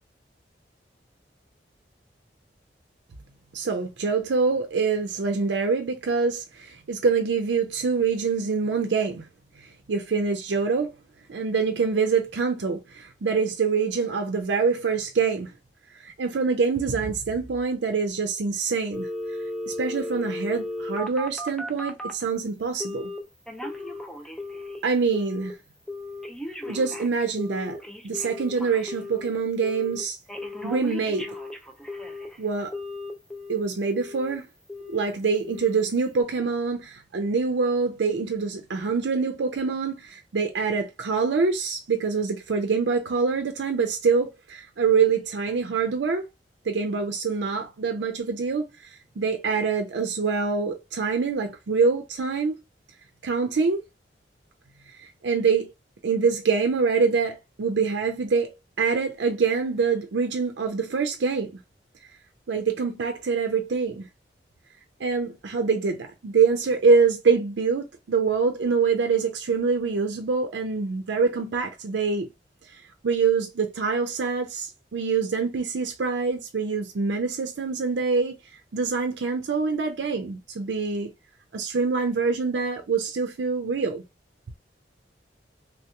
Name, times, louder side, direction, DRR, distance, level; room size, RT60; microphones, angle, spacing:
voice 1, 3.5-9.2 9.6-10.9 11.3-15.5 16.0-19.1 19.7-23.1 24.8-25.5 26.7-27.8 28.0-30.2 30.6-31.3 32.4-32.7 33.5-34.5 34.9-46.2 46.7-52.6 53.2-53.8 55.0-55.7 56.0-58.5 58.8-61.5 62.5-64.1 65.0-72.3 73.0-78.4 78.7-81.1 81.5-84.0, right 5 dB, 85° right, 0.5 m, -25 dB
Telephone, 18.9-22.2 22.8-23.2 23.5-24.8 25.1-25.5 25.9-29.3 29.6-30.0 30.3-32.4 32.7-33.6 33.9-34.3 34.7-35.1 35.4-35.8 36.2-36.3, left 2 dB, 5° left, 0.4 m, -35 dB
3.5 x 2.9 x 2.2 m
head